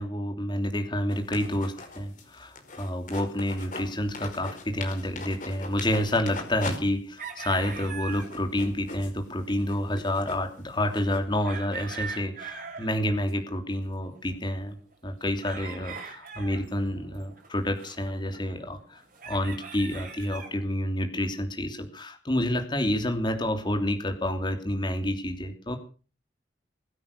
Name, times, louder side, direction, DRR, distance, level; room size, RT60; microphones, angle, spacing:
voice 1, 0.0-14.8 15.0-25.8, left 1 dB, 25° left, 5 dB, 3.0 m, -29 dB
sound 1, 1.1-3.9 4.1-6.8 7.1-7.2 7.6-11.2, left 3 dB, 45° left, 5.2 m, -40 dB
sound 2, 7.2-8.4 8.8-8.9 9.0-9.1 9.3-9.5 9.8-13.5 13.8-20.6, right 5 dB, 50° right, 6.0 m, -42 dB
22.0 x 9.6 x 6.8 m, 0.38 s
head